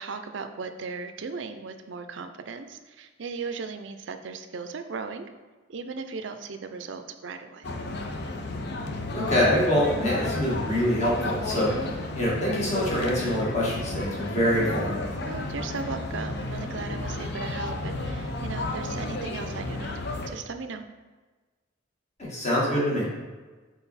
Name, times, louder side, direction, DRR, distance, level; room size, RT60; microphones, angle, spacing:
voice 1, 0.0-5.3 5.7-7.7 15.3-20.0 20.3-20.8, right 4 dB, 65° right, 8 dB, 0.5 m, -37 dB
sound 1, 7.6-20.3, left 2 dB, 55° left, 0.6 m, -32 dB
voice 2, 9.1-15.0 22.2-23.1, equal, 35° left, -6 dB, 1.7 m, -25 dB
5.8 x 4.4 x 4.1 m, 1.3 s
head